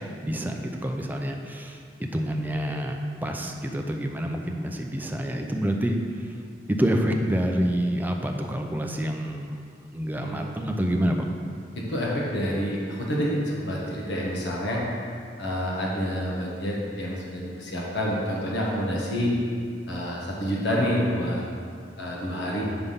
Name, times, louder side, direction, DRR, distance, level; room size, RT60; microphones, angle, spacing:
voice 1, 0.0-1.8 2.1-6.0 6.7-9.6 9.9-11.3, equal, 10° right, 3 dB, 0.5 m, -27 dB
voice 2, 11.7-14.8 15.4-19.3 19.9-21.4 22.0-22.6, equal, 70° left, -4 dB, 1.2 m, -28 dB
8.1 x 3.5 x 5.5 m, 2.2 s
head